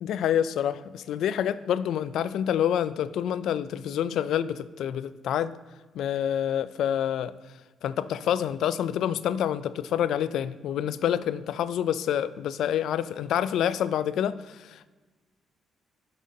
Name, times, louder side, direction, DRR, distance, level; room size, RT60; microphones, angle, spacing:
voice 1, 0.0-5.6 5.9-7.3 7.8-14.9, left 10 dB, 75° left, 16 dB, 0.3 m, -27 dB
9.7 x 6.3 x 2.7 m, 1.3 s
cardioid pair, 90°, 0 cm